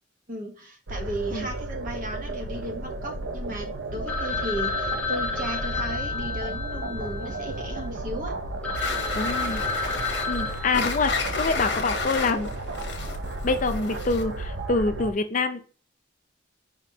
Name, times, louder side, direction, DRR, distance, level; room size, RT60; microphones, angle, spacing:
voice 1, 0.3-8.3, right 1 dB, 45° right, 3 dB, 1.1 m, -35 dB
sound 1, 0.9-15.1, right 2 dB, 75° right, 0.6 m, -34 dB
Telephone, 4.1-7.9 8.3-8.4 8.6-11.5, left 4 dB, 5° left, 0.8 m, -31 dB
sound 2, 8.7-14.4, left 4 dB, 65° left, 1.0 m, -32 dB
voice 2, 9.2-9.6 10.3-12.5 13.4-15.6, left 3 dB, 45° left, 8 dB, 0.4 m, -26 dB
5.0 x 3.6 x 2.7 m, 0.38 s
head